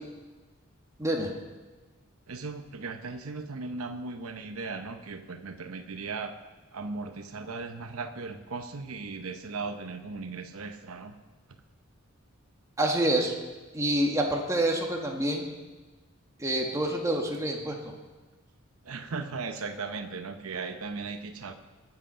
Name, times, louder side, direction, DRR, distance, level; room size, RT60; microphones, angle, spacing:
voice 1, 1.0-1.3 12.8-13.3 13.7-15.5 16.4-17.9, right 1 dB, 15° right, 0 dB, 1.6 m, -27 dB
voice 2, 2.3-6.4 6.7-11.2 18.8-21.5, right 4 dB, 90° right, 7 dB, 0.9 m, -37 dB
20.5 x 7.9 x 5.6 m, 1.3 s
head